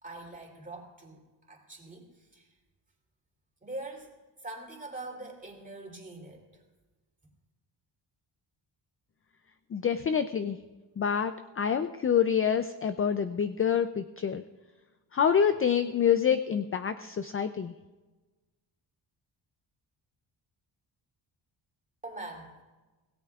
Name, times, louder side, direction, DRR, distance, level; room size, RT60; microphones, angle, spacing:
voice 1, 0.0-2.5 3.6-4.1 4.4-6.6 22.0-22.5, right 2 dB, 15° right, 0 dB, 3.1 m, -43 dB
voice 2, 9.7-10.6 11.0-14.4 15.1-17.7, left 7 dB, 30° left, 10 dB, 0.4 m, -27 dB
25.0 x 17.5 x 2.4 m, 1.2 s
wide cardioid pair, 150°, 46 cm